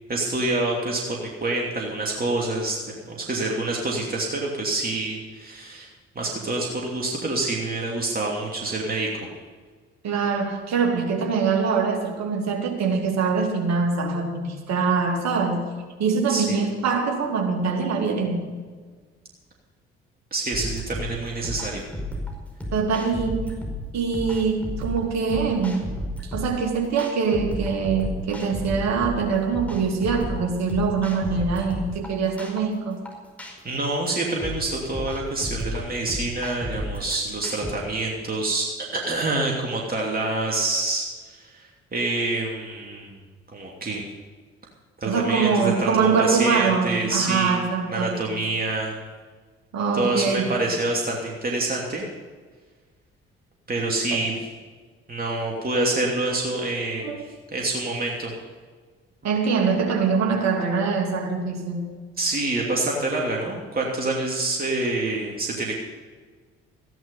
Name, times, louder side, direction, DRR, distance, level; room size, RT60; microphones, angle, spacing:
voice 1, 0.1-2.8 3.1-5.9 6.1-9.3 16.3-16.6 20.3-21.8 33.6-43.2 43.5-44.0 45.0-47.6 47.9-48.9 49.9-52.1 53.7-54.3 55.1-58.3 62.2-65.8, right 2 dB, 30° right, -1 dB, 2.9 m, -27 dB
voice 2, 10.0-15.7 16.0-18.5 22.7-23.5 23.9-25.9 26.2-33.0 45.0-48.2 49.7-50.5 54.1-54.2 57.0-57.2 59.2-61.9, right 5 dB, 60° right, 1 dB, 2.7 m, -23 dB
sound 1, 20.5-37.7, left 1 dB, 5° left, 5.1 m, -33 dB
14.5 x 10.5 x 5.5 m, 1.5 s
figure-of-eight pair, 45°, 31 cm